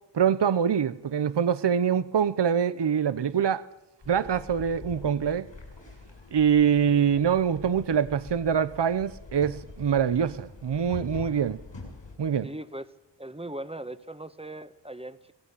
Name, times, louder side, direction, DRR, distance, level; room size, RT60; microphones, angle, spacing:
voice 1, 0.1-3.6 4.1-5.5 6.3-11.6 12.2-12.5, right 7 dB, 70° right, 0.8 m, -24 dB
sound 1, 4.0-12.2, left 3 dB, 80° left, 7.6 m, -45 dB
voice 2, 12.4-12.9 13.2-15.3, right 1 dB, 15° right, 1.4 m, -39 dB
27.0 x 18.0 x 8.4 m
wide cardioid pair, 75°, 43 cm